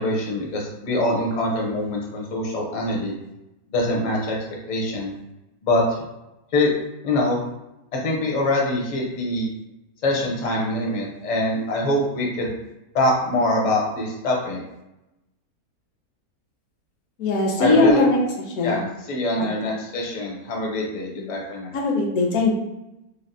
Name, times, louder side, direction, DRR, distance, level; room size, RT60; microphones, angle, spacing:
voice 1, 0.0-3.1 3.7-4.4 4.7-5.1 5.6-5.8 6.5-6.7 7.0-7.4 8.0-9.5 10.0-12.5 12.9-14.6 17.6-18.0 18.6-21.8, left 1 dB, 50° left, -2 dB, 0.5 m, -24 dB
voice 2, 17.2-18.2 18.6-18.8 19.4-19.5 21.7-22.5, left 2 dB, 70° left, 0 dB, 1.0 m, -20 dB
3.3 x 2.2 x 2.6 m, 0.93 s
omnidirectional pair, 1.6 m